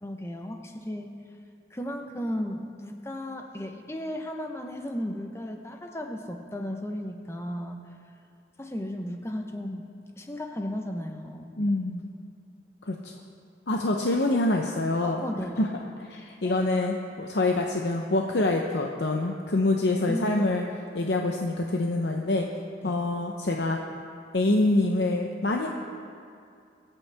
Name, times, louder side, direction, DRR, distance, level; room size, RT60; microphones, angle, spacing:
voice 1, 0.0-1.2 1.7-7.8 8.6-9.9 10.2-11.5 15.0-15.7 16.4-16.6 20.1-20.5 22.8-23.0, equal, 15° left, 4 dB, 0.8 m, -35 dB
voice 2, 11.6-12.0 12.8-13.1 13.7-15.2 15.6-15.7 16.1-20.6 20.9-22.5 22.8-23.8 24.3-25.7, left 2 dB, 70° left, 1 dB, 0.8 m, -25 dB
24.5 x 8.5 x 3.5 m, 2.4 s
head